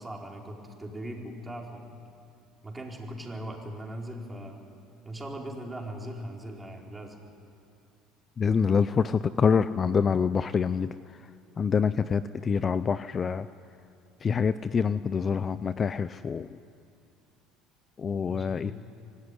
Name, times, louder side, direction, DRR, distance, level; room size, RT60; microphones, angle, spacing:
voice 1, 0.0-1.9 2.6-4.6 5.0-7.2 18.3-18.7, right 1 dB, 10° right, -1 dB, 4.6 m, -39 dB
voice 2, 8.4-10.9 11.6-13.5 14.2-16.5 18.0-18.7, left 6 dB, 30° left, 14 dB, 0.5 m, -26 dB
25.5 x 17.0 x 10.0 m, 2.5 s
supercardioid pair, 105°, 0 cm